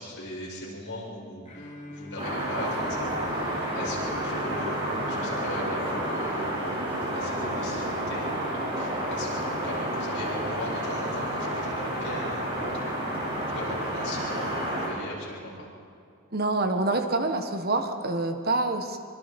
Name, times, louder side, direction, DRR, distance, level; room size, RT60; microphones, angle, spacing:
voice 1, 0.0-15.7, left 1 dB, 55° left, -5 dB, 7.6 m, -39 dB
Bowed string instrument, 1.5-6.3, equal, 30° left, 3.0 m, -45 dB
sound 1, 2.2-14.9, right 1 dB, 25° right, 6.9 m, -30 dB
voice 2, 16.3-19.0, right 2 dB, 45° right, 6 dB, 1.4 m, -26 dB
25.0 x 24.0 x 5.4 m, 2.5 s
head